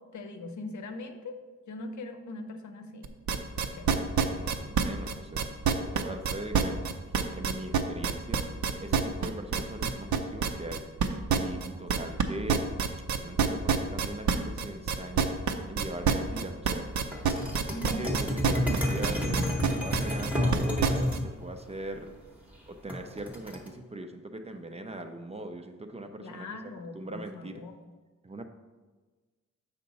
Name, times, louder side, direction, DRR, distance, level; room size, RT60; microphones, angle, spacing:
voice 1, 0.1-1.4 1.7-3.1 3.7-3.9 4.6-4.8 11.7-12.2 17.7-18.2 26.2-27.7, left 2 dB, 75° left, 6 dB, 0.8 m, -41 dB
sound 1, 3.0-21.2, right 7 dB, 75° right, 0.6 m, -26 dB
voice 2, 4.3-5.5 5.8-6.8 7.3-8.4 8.8-10.8 11.4-12.7 13.1-15.3 15.7-16.9 17.6-22.1 22.7-26.5 26.9-27.6 28.2-28.4, right 1 dB, 20° right, 6 dB, 0.4 m, -40 dB
sound 2, 17.1-21.2 22.9-23.7, equal, 5° right, 0.8 m, -30 dB
7.4 x 5.5 x 4.0 m, 1.3 s
wide cardioid pair, 180°, 29 cm